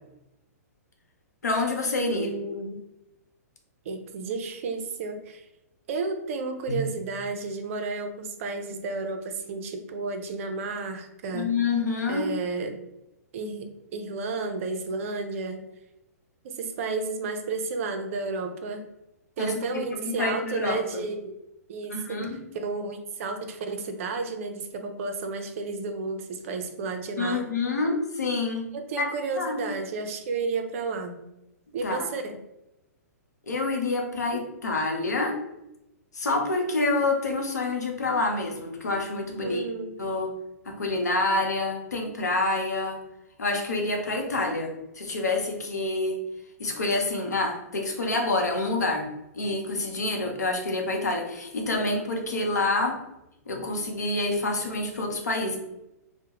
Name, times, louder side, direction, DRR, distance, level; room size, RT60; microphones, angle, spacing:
voice 1, 1.4-2.3 6.7-6.8 11.3-12.3 19.4-21.1 21.9-22.4 27.2-29.1 29.3-29.6 31.8-32.1 33.5-35.4 36.1-39.6 40.0-40.3 40.7-43.0 43.4-46.2 46.6-53.1 53.5-55.6, left 2 dB, 85° left, 1 dB, 0.7 m, -27 dB
voice 2, 2.1-2.8 3.9-5.5 5.9-11.6 12.1-12.7 13.3-15.6 16.4-18.8 19.4-21.3 21.7-27.5 28.7-31.2 31.7-32.4 39.4-39.9, right 3 dB, 55° right, 6 dB, 0.5 m, -32 dB
2.3 x 2.1 x 2.9 m, 0.89 s
hypercardioid pair, 120°, 9 cm